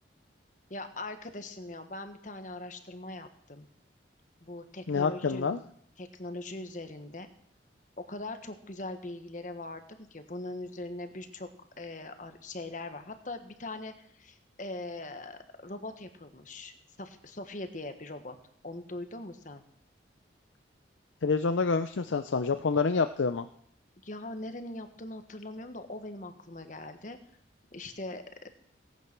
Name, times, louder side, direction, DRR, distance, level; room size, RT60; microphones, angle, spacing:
voice 1, 0.7-3.7 4.4-5.7 6.0-7.3 8.0-11.5 11.8-18.3 18.6-19.6 24.0-27.2 27.7-28.5, left 2 dB, 40° left, 8 dB, 1.3 m, -41 dB
voice 2, 4.9-5.6 21.2-23.5, left 4 dB, 85° left, 9 dB, 0.6 m, -27 dB
17.5 x 9.2 x 5.9 m, 0.66 s
head